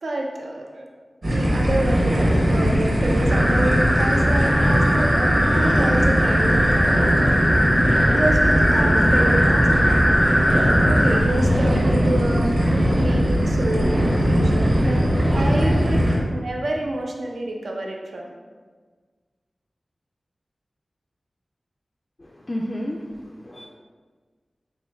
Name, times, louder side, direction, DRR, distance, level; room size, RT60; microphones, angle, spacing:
voice 1, 0.0-0.9 1.3-7.4 7.9-10.0 10.9-16.0 16.3-18.3, right 1 dB, 85° right, 0 dB, 0.5 m, -28 dB
sound 1, 1.2-16.2, equal, 60° right, 1.2 m, -20 dB
sound 2, 3.3-11.2, equal, 15° right, 0.5 m, -21 dB
voice 2, 22.2-23.7, equal, 40° left, -2 dB, 0.3 m, -31 dB
4.2 x 3.6 x 2.3 m, 1.5 s
wide cardioid pair, 65°, 0 cm